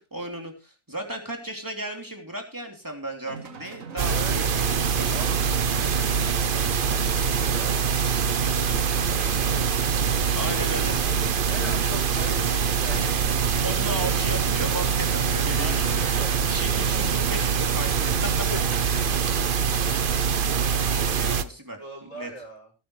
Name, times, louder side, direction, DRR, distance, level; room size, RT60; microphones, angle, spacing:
voice 1, 0.0-5.2 10.3-10.9 13.6-18.5 19.7-20.4 20.9-22.3, right 1 dB, 15° right, 2 dB, 3.1 m, -35 dB
sound 1, 3.3-18.8, right 3 dB, 90° right, 1.9 m, -40 dB
voice 2, 4.0-4.5 5.1-5.5 5.8-10.9 11.5-14.0 15.5-16.3 18.5-18.6 21.7-22.7, left 1 dB, 25° left, -1 dB, 6.7 m, -41 dB
sound 2, 4.0-21.4, right 6 dB, 45° right, 0.9 m, -24 dB
18.0 x 10.0 x 3.2 m, 0.31 s
omnidirectional pair, 1.4 m